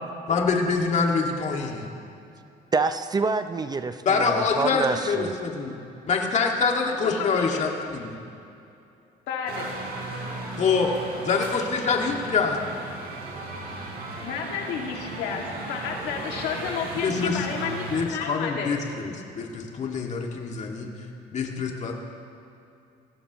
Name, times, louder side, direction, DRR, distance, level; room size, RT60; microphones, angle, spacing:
voice 1, 0.3-1.9 4.1-5.8 6.1-8.2 10.6-10.9 11.2-12.6 17.0-17.4 17.9-20.9 21.3-21.9, left 4 dB, 45° left, 0 dB, 2.1 m, -25 dB
voice 2, 2.7-5.3, right 4 dB, 25° right, 10 dB, 0.5 m, -27 dB
voice 3, 7.2-7.6 9.3-9.7 14.2-18.7, left 6 dB, 90° left, 0 dB, 2.2 m, -31 dB
sound 1, 9.5-18.1, right 2 dB, 70° right, 3.9 m, -36 dB
21.5 x 17.0 x 3.1 m, 2.6 s
cardioid pair, 110°, 17 cm